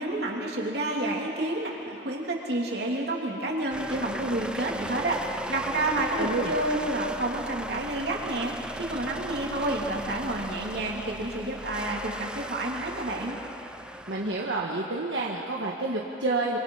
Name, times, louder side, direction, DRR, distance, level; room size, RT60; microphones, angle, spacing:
voice 1, 0.0-5.2 5.5-13.4, right 1 dB, 60° right, -1 dB, 3.3 m, -29 dB
sound 1, 3.7-14.6, right 1 dB, 5° right, 0.6 m, -37 dB
voice 2, 6.2-6.5 14.1-16.6, right 2 dB, 80° right, -2 dB, 1.7 m, -29 dB
27.0 x 26.0 x 5.8 m, 2.8 s
head